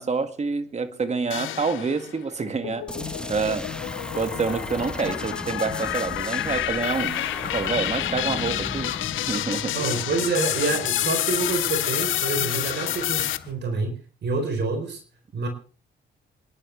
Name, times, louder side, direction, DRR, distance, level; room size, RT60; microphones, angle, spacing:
voice 1, 0.0-3.7 4.1-8.9 9.3-9.9, right 4 dB, 35° right, 9 dB, 2.1 m, -28 dB
sound 1, 1.3-2.2 2.6-13.4, left 14 dB, 80° left, 0.8 m, -29 dB
sound 2, 2.9-10.4, left 1 dB, 5° left, 1.3 m, -36 dB
Bird, 7.4-13.5, left 7 dB, 50° left, 3.9 m, -38 dB
voice 2, 9.7-15.0 15.3-15.5, right 4 dB, 60° right, 6 dB, 4.2 m, -27 dB
27.5 x 11.0 x 3.4 m, 0.37 s
cardioid pair, 90°, 20 cm